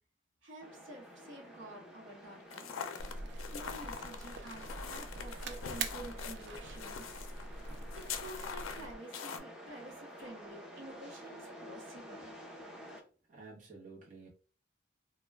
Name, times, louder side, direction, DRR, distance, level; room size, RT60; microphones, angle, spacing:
voice 1, 0.4-2.8 3.3-7.1 8.0-12.3, right 1 dB, 75° right, 0 dB, 0.8 m, -50 dB
sound 1, 0.6-13.0, equal, 5° right, 0.6 m, -52 dB
sound 2, 2.5-9.4, left 7 dB, 90° left, 0.4 m, -43 dB
sound 3, 3.0-8.9, right 3 dB, 60° right, 0.3 m, -44 dB
voice 2, 13.3-14.3, right 3 dB, 40° right, -3 dB, 0.8 m, -51 dB
2.2 x 2.1 x 3.3 m, 0.39 s
head